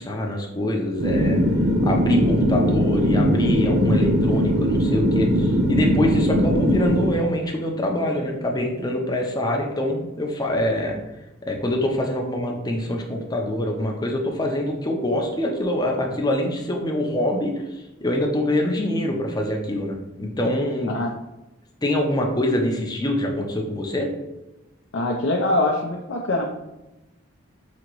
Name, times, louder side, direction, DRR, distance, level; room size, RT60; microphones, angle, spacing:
voice 1, 0.0-1.4 1.8-11.0 11.5-20.9 21.8-24.1, left 1 dB, 20° left, 1 dB, 0.6 m, -24 dB
sound 1, 1.0-7.1, equal, 55° right, 0.6 m, -20 dB
voice 2, 24.9-26.5, left 2 dB, 60° left, 0 dB, 0.5 m, -23 dB
5.0 x 2.8 x 3.0 m, 0.97 s
head